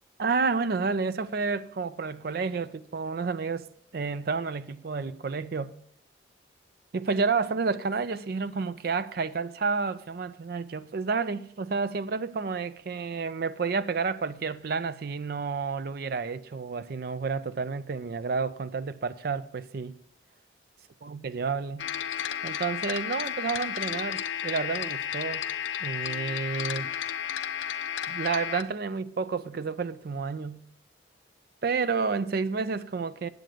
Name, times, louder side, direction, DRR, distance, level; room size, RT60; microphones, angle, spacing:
voice 1, 0.2-3.7 3.9-5.7 6.9-20.0 21.0-21.9 22.4-25.5 25.8-26.9 28.1-30.7 31.6-33.3, right 4 dB, 50° right, 0.4 m, -30 dB
sound 1, 21.8-28.6, left 9 dB, 80° left, 0.6 m, -32 dB
9.1 x 7.7 x 5.0 m
head